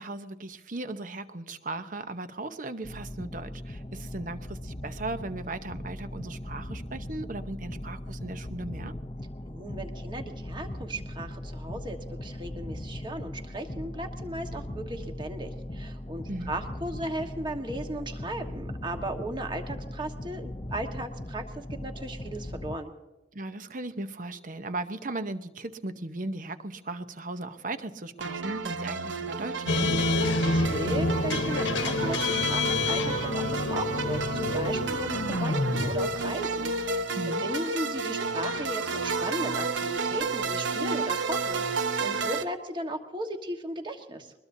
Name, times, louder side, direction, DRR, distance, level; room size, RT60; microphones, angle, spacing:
voice 1, 0.0-8.9 16.3-16.5 23.3-29.9 37.1-37.4, right 2 dB, 45° right, 10 dB, 0.9 m, -37 dB
sound 1, 2.8-22.8, left 1 dB, 25° left, 0.6 m, -39 dB
voice 2, 9.4-22.9 30.3-44.3, right 1 dB, 25° right, 4 dB, 1.4 m, -36 dB
sound 2, 28.2-42.4, right 4 dB, 75° right, 1.0 m, -31 dB
sound 3, 29.7-37.0, left 3 dB, 75° left, 1.2 m, -28 dB
22.5 x 21.0 x 2.7 m, 1.1 s
head